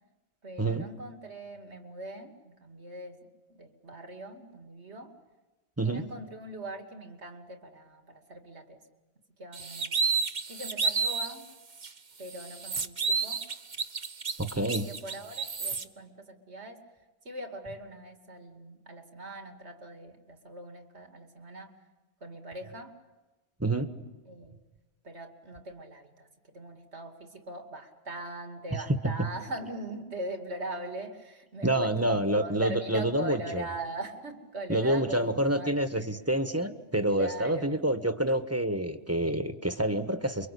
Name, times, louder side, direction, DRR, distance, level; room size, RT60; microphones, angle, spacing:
voice 1, 0.4-3.2 3.5-5.1 5.8-8.8 9.4-10.0 10.5-11.5 12.2-13.4 14.6-16.8 17.2-21.7 22.2-22.9 24.3-24.5 25.0-35.7 37.1-37.8, right 1 dB, 80° right, 5 dB, 2.9 m, -41 dB
sound 1, 9.5-11.4 11.8-11.9 12.3-15.8, right 5 dB, 45° right, 1.2 m, -31 dB
voice 2, 14.4-14.9 23.6-23.9 29.0-29.3 31.6-33.6 34.7-40.5, right 1 dB, 15° right, 9 dB, 1.4 m, -28 dB
29.0 x 24.0 x 8.5 m, 1.1 s
omnidirectional pair, 1.1 m